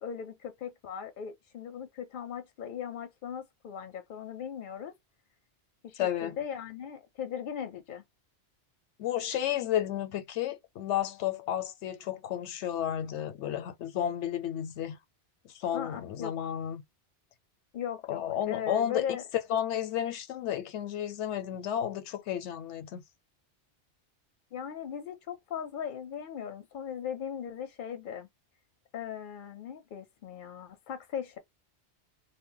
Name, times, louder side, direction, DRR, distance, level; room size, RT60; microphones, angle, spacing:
voice 1, 0.0-4.9 5.8-8.0 15.7-16.3 17.7-19.2 24.5-28.3 28.9-31.4, left 8 dB, 60° left, 0.6 m, -38 dB
voice 2, 6.0-6.4 9.0-15.0 15.4-16.8 18.1-23.0, left 11 dB, 85° left, 0.9 m, -32 dB
2.1 x 2.1 x 3.6 m
omnidirectional pair, 1.2 m